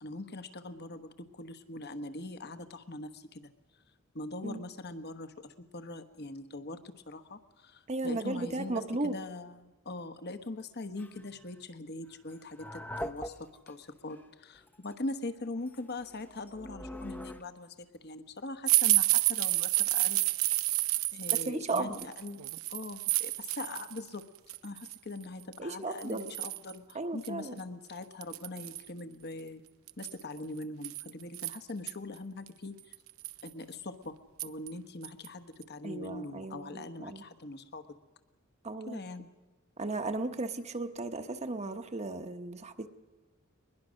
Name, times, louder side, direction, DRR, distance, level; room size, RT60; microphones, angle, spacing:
voice 1, 0.0-3.4 4.1-20.2 21.1-22.4 22.7-24.2 24.6-29.6 30.0-32.9 33.4-34.2 34.4-37.9 38.8-39.3, left 2 dB, 50° left, 11 dB, 1.2 m, -42 dB
voice 2, 7.9-9.2 21.3-22.1 25.6-26.3 26.9-27.6 35.8-37.2 38.6-39.0 39.8-42.9, right 2 dB, 30° right, 7 dB, 1.0 m, -35 dB
sound 1, 11.0-11.3 12.3-13.7 14.1-14.2 14.7-14.9 15.7-17.4, equal, 10° left, 0.7 m, -42 dB
sound 2, 18.7-24.0 24.4-25.0 25.5-25.6 26.0-26.7 27.2-27.3 27.6-27.7 28.2-28.9 29.9-31.9 32.5-32.6 32.9-33.5 34.4-34.7 35.0-35.3 35.6-35.7, right 18 dB, 75° right, 0.6 m, -29 dB
22.0 x 21.0 x 6.4 m, 1.2 s
head